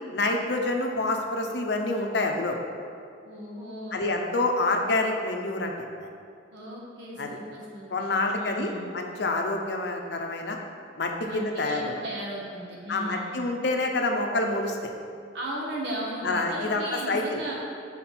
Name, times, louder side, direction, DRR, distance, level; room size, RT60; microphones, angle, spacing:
voice 1, 0.1-2.6 3.9-5.7 6.0-6.1 7.2-7.4 7.9-10.6 11.0-11.9 12.9-14.9 16.2-17.4, left 2 dB, 65° left, 2 dB, 0.6 m, -27 dB
voice 2, 3.2-4.0 6.5-8.9 11.2-13.4 15.3-17.5, right 1 dB, 80° right, -3 dB, 1.3 m, -36 dB
5.8 x 4.3 x 4.2 m, 2.4 s
head